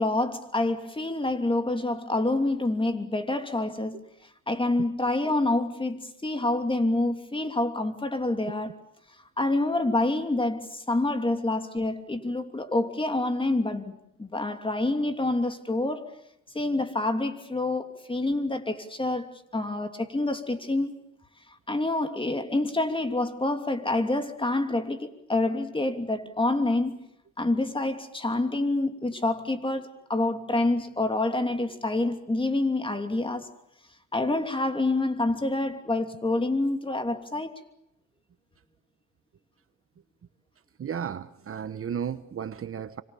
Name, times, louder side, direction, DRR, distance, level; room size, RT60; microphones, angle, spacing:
voice 1, 0.0-4.0 4.5-8.7 9.4-13.9 14.2-16.1 16.5-21.0 21.7-27.0 27.4-33.5 34.1-37.5, left 2 dB, 15° left, 2.9 m, -27 dB
voice 2, 40.8-43.0, right 8 dB, 45° right, 1.2 m, -34 dB
27.0 x 25.5 x 7.1 m
cardioid pair, 90°, 30 cm